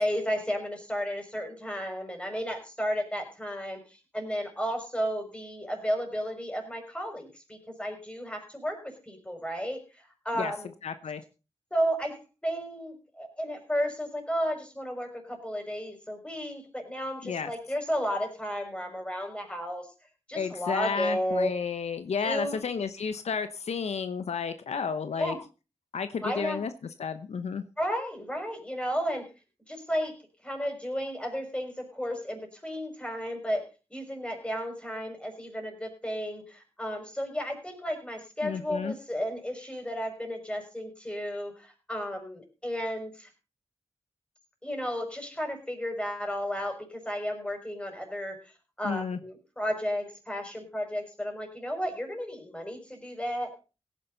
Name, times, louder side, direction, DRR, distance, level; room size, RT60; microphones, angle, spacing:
voice 1, 0.0-3.8 4.1-9.8 10.2-10.7 11.7-19.9 20.3-21.5 22.2-22.6 25.2-25.4 26.2-26.6 27.8-29.3 29.7-30.1 30.4-43.3 44.6-48.4 48.8-53.5, equal, 10° left, 3 dB, 5.7 m, -33 dB
voice 2, 10.8-11.2 17.2-17.5 20.3-25.3 25.9-26.7 27.0-27.6 38.4-38.9 48.8-49.2, left 6 dB, 75° left, 11 dB, 1.0 m, -32 dB
17.0 x 10.0 x 4.0 m, 0.32 s
cardioid pair, 75°, 11 cm